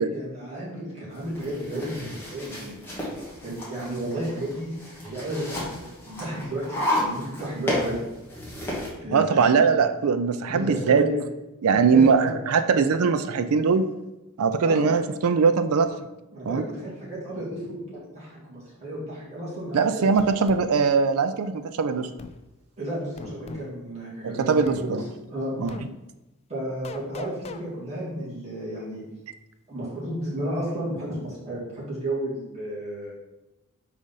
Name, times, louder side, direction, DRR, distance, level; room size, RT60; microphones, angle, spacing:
voice 1, 0.1-3.1 3.4-8.0 9.0-9.5 10.5-11.2 11.7-12.0 14.6-14.9 16.3-20.1 22.8-25.0 25.3-25.5 26.5-29.0 29.7-33.1, right 1 dB, 30° right, -8 dB, 2.1 m, -33 dB
sound 1, 1.1-8.9, left 1 dB, 10° left, 1.6 m, -32 dB
voice 2, 9.1-11.1 11.6-13.8 14.4-15.9 16.4-16.6 19.7-22.1 24.2-25.0 25.6-25.8, right 5 dB, 70° right, 9 dB, 0.4 m, -21 dB
sound 2, 20.2-20.7 22.2-22.4 23.2-23.7 24.7-24.9 25.7-25.9 26.8-27.6, left 4 dB, 30° left, 0.3 m, -39 dB
4.9 x 3.9 x 5.5 m, 0.99 s
head